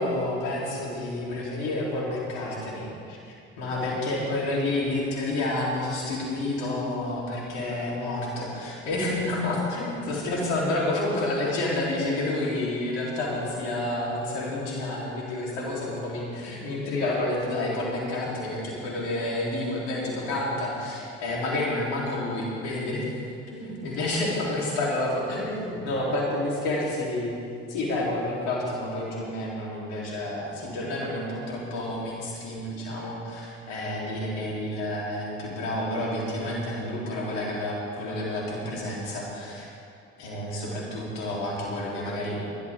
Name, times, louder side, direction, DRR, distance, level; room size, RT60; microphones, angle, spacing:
voice 1, 0.0-23.1 23.5-27.3 27.7-39.7 40.2-42.7, left 1 dB, 80° left, -4 dB, 3.7 m, -29 dB
21.0 x 12.0 x 3.7 m, 2.5 s
hypercardioid pair, 55°, 34 cm